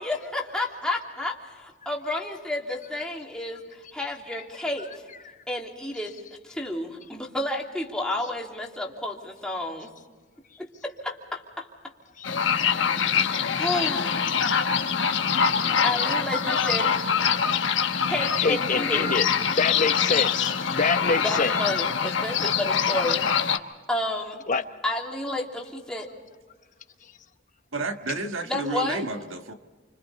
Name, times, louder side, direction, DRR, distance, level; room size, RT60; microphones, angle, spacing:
voice 1, 0.0-5.0 5.5-6.2 6.4-9.9 10.6-11.7 12.4-12.9 13.5-14.3 15.8-16.9 18.1-19.1 21.2-23.6 23.9-24.4 24.8-26.1 28.4-29.0, left 1 dB, 5° left, -2 dB, 2.9 m, -31 dB
sound 1, 12.2-23.6, left 7 dB, 65° left, 1.2 m, -24 dB
voice 2, 12.8-13.4 18.4-19.2 19.6-21.7 24.5-24.6, left 4 dB, 40° left, 8 dB, 1.1 m, -26 dB
voice 3, 27.7-29.5, right 3 dB, 85° right, 6 dB, 1.7 m, -31 dB
29.0 x 26.0 x 4.2 m, 1.4 s
head